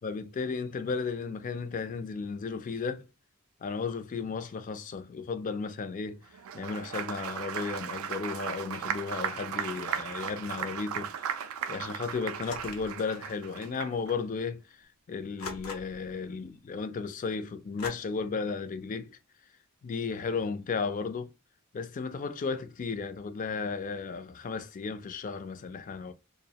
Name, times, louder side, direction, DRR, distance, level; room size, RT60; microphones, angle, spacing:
voice 1, 0.0-3.1 3.6-6.2 6.5-11.1 11.7-19.2 19.8-21.3 21.7-26.1, left 5 dB, 40° left, 0.3 m, -34 dB
Applause, 6.3-14.1, right 8 dB, 75° right, 0.3 m, -36 dB
sound 1, 12.4-13.0 14.0-14.1 15.4-16.1 17.8-17.9, left 3 dB, 90° left, 0.7 m, -41 dB
2.4 x 2.0 x 2.7 m
head